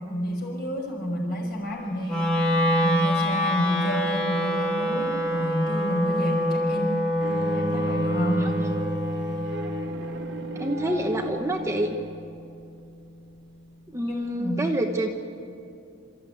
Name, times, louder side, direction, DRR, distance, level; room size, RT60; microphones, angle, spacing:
voice 1, 0.1-2.5 2.8-7.0 7.3-8.5 14.1-14.7, equal, 50° left, 0 dB, 5.5 m, -29 dB
Wind instrument woodwind instrument, 2.1-12.2, equal, 5° left, 2.2 m, -27 dB
Bowed string instrument, 7.2-12.3, right 2 dB, 55° right, 1.4 m, -33 dB
voice 2, 10.6-11.9 13.9-15.1, right 1 dB, 15° right, 3 dB, 1.1 m, -27 dB
27.0 x 14.0 x 9.4 m, 2.6 s
head